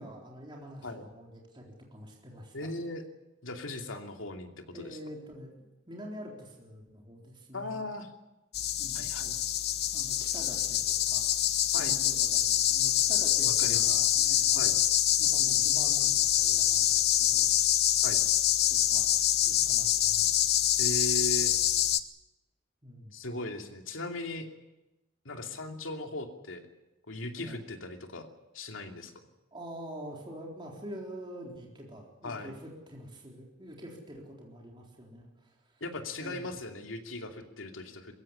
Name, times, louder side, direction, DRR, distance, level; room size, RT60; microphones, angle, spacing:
voice 1, 0.0-2.7 4.7-7.8 8.8-9.1 9.9-11.3 11.8-14.7 15.2-17.5 18.7-19.2 19.5-20.3 22.8-23.1 27.4-27.6 29.5-35.8 36.2-36.5, equal, 25° right, -1 dB, 3.9 m, -46 dB
voice 2, 2.5-3.0 3.4-5.0 7.5-8.1 8.9-9.4 11.7-11.9 13.4-13.9 14.5-14.7 18.0-18.2 20.8-21.5 23.1-24.5 25.2-26.6 27.1-28.3 28.5-29.1 32.2-32.5 35.8-38.1, left 2 dB, 90° left, 4 dB, 2.7 m, -38 dB
sound 1, 8.5-22.0, left 12 dB, 55° left, 1.0 m, -26 dB
22.0 x 16.0 x 10.0 m, 1.0 s
head